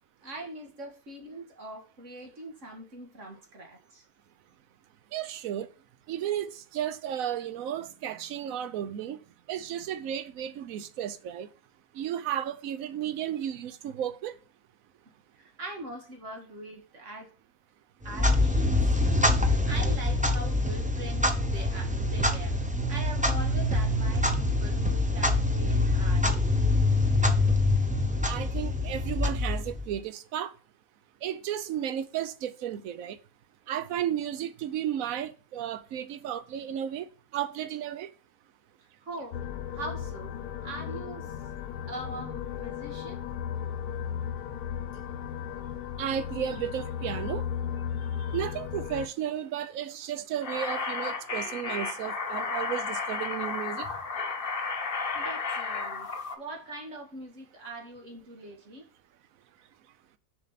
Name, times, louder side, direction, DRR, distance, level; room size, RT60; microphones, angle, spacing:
voice 1, 0.2-4.0 15.4-17.3 18.0-18.7 19.7-22.6 22.9-26.3 39.0-40.4 40.6-41.3 41.9-43.2 55.1-56.1 56.4-58.8, right 1 dB, 50° right, 2.2 m, -42 dB
voice 2, 5.1-5.7 6.1-9.2 9.5-11.5 11.9-14.3 28.3-30.5 31.2-33.2 33.7-38.1 46.0-47.5 48.2-53.9, right 10 dB, 65° right, 1.1 m, -33 dB
Clock, 18.0-30.0, left 2 dB, 10° right, 0.6 m, -25 dB
sound 1, 39.3-49.1, left 9 dB, 75° left, 1.3 m, -35 dB
sound 2, 50.4-56.3, left 4 dB, 40° left, 1.2 m, -33 dB
7.4 x 5.1 x 5.7 m
omnidirectional pair, 1.7 m